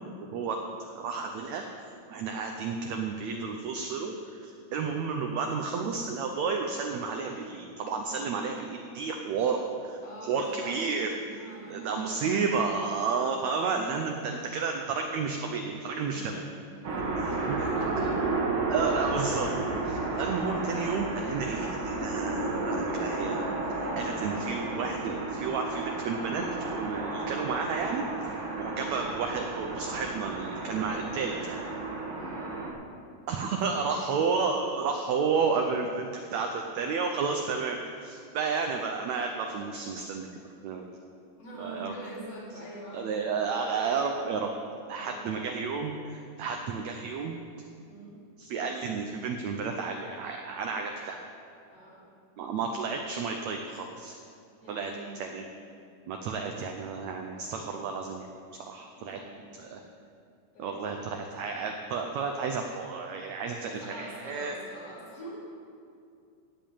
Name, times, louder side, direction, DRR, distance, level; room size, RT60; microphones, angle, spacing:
voice 1, 0.2-4.2 4.4-11.1 11.7-16.5 17.5-17.7 18.7-19.5 19.8-23.5 23.8-31.6 33.3-40.3 40.6-40.9 41.6-41.9 42.9-44.5 44.9-47.3 48.4-51.3 52.4-54.1 54.7-54.9 55.2-55.4 56.1-58.3 58.7-59.2 59.5-59.8 60.6-64.5, right 5 dB, 75° right, 3 dB, 1.7 m, -32 dB
voice 2, 10.0-12.8 16.1-18.3 28.4-28.8 32.1-32.5 33.6-34.2 41.4-43.4 44.9-45.6 47.8-48.2 51.7-52.1 54.6-55.4 59.0-59.7 60.5-61.2 63.6-65.5, right 1 dB, 45° left, -6 dB, 4.9 m, -45 dB
sound 1, 16.8-32.7, right 3 dB, 45° right, 1.9 m, -32 dB
16.0 x 5.6 x 8.7 m, 2.4 s
omnidirectional pair, 3.9 m